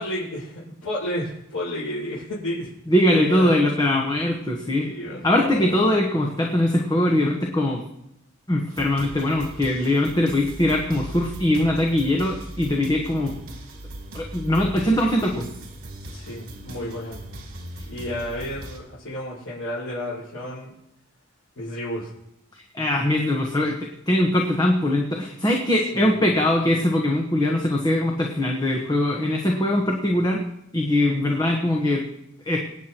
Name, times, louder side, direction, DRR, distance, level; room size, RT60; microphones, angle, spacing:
voice 1, 0.0-2.7 3.1-3.5 4.6-5.6 16.1-17.2 17.9-20.7 21.5-22.1 25.9-26.2, left 1 dB, 90° left, -10 dB, 5.1 m, -31 dB
voice 2, 2.9-4.9 5.2-7.8 8.5-13.3 14.1-15.5 22.5-30.4 30.7-32.0 32.4-32.6, left 1 dB, 20° left, 0 dB, 1.2 m, -21 dB
sound 1, 8.7-18.8, right 1 dB, 65° right, 2.8 m, -39 dB
25.0 x 9.3 x 3.0 m, 0.83 s
head